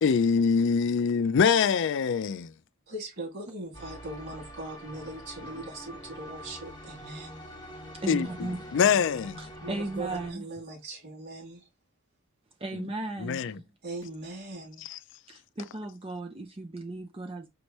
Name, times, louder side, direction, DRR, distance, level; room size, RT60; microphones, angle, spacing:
voice 1, 0.0-2.5 8.1-9.4 12.7-12.8 13.2-13.6 14.8-15.0, left 6 dB, 60° left, 0.4 m, -24 dB
voice 2, 2.9-7.4 9.6-11.7 13.8-14.8, right 2 dB, 50° right, 2.9 m, -40 dB
sound 1, 3.7-10.3, equal, 20° left, 1.3 m, -44 dB
voice 3, 8.0-8.6 9.4-10.4 12.6-13.4 15.3-17.5, right 2 dB, 25° right, 0.6 m, -36 dB
5.2 x 3.2 x 3.0 m
head